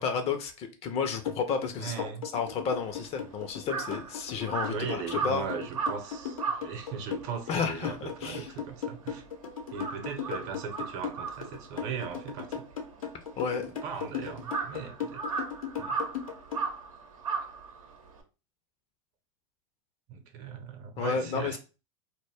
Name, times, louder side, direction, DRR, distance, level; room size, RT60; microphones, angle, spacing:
voice 1, 0.0-5.5 7.5-8.5 13.4-13.7 21.0-21.6, left 6 dB, 35° left, 0.5 m, -32 dB
sound 1, 1.2-16.6, left 7 dB, 85° left, 0.7 m, -37 dB
voice 2, 1.8-2.2 4.5-9.2 9.7-12.6 13.7-15.3 15.8-16.0 20.1-21.6, right 6 dB, 50° right, 0.8 m, -38 dB
Crow, 2.7-9.3 9.6-18.2, right 5 dB, 80° right, 0.7 m, -37 dB
2.2 x 2.0 x 3.3 m
hypercardioid pair, 105°, 17 cm